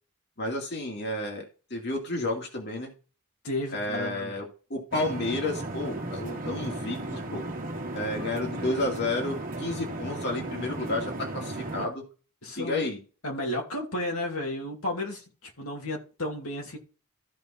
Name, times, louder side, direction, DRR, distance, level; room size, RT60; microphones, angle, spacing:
voice 1, 0.4-1.4 1.7-2.9 3.7-7.4 7.9-12.0 12.6-13.0, left 2 dB, 50° left, 2.5 m, -31 dB
voice 2, 3.4-4.3 8.1-8.2 11.8-11.9 12.4-12.9 13.2-16.8, left 1 dB, 70° left, 2.6 m, -33 dB
sound 1, 4.9-11.9, right 2 dB, 40° right, 1.4 m, -35 dB
14.5 x 5.3 x 4.2 m
head